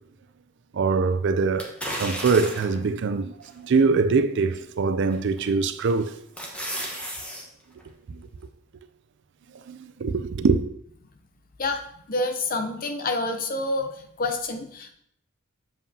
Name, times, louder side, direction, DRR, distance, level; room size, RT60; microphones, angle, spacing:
voice 1, 0.7-6.1 8.1-8.3 9.7-10.6, right 4 dB, 55° right, 0.4 m, -23 dB
sound 1, 1.6-2.8 3.4-3.5 5.1-5.4 5.9-7.4 7.8-7.9, equal, 5° left, 1.1 m, -33 dB
voice 2, 12.1-14.9, left 2 dB, 40° left, 0.7 m, -28 dB
7.6 x 7.3 x 2.8 m
head